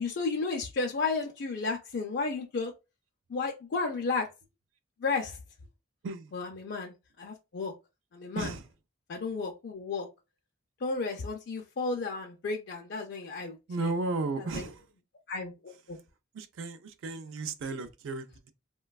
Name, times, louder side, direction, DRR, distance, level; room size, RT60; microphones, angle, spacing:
voice 1, 0.0-2.7 3.3-4.3 5.0-5.4 6.3-7.7 8.1-8.5 9.1-10.1 10.8-13.9 14.5-14.7 15.3-16.0, left 4 dB, 60° left, 0.4 m, -33 dB
voice 2, 8.4-8.7 13.7-14.9 15.9-16.0 16.3-18.5, right 3 dB, 85° right, 0.4 m, -34 dB
3.1 x 2.2 x 2.2 m
head